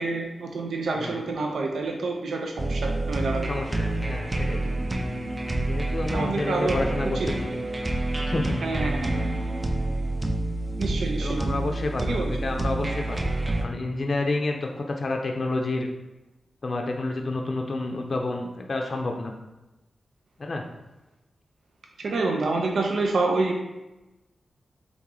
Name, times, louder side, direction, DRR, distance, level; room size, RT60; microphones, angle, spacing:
voice 1, 0.0-3.5 6.1-6.8 7.1-7.3 8.6-9.1 10.8-11.5 12.0-12.3 22.0-23.6, right 3 dB, 80° right, 1 dB, 0.5 m, -27 dB
sound 1, 2.6-13.6, right 2 dB, 20° right, 0.4 m, -28 dB
voice 2, 3.5-4.7 5.6-7.5 8.3-8.6 11.2-13.3 13.6-15.9 16.6-19.3 20.4-20.6, left 2 dB, 50° left, 2 dB, 0.4 m, -29 dB
3.6 x 3.0 x 3.7 m, 1.0 s
wide cardioid pair, 85°, 0 cm